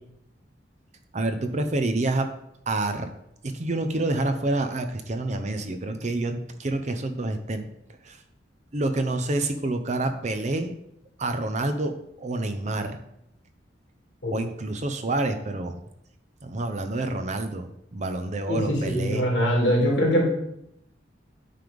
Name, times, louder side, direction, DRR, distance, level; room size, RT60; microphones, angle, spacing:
voice 1, 1.1-2.3 2.7-3.1 3.4-7.7 8.0-8.2 8.7-10.7 11.2-13.0 14.3-15.8 16.4-19.3, right 2 dB, 40° right, 8 dB, 0.6 m, -28 dB
voice 2, 18.5-20.3, equal, 65° left, -2 dB, 2.5 m, -22 dB
9.3 x 3.4 x 5.1 m, 0.78 s
head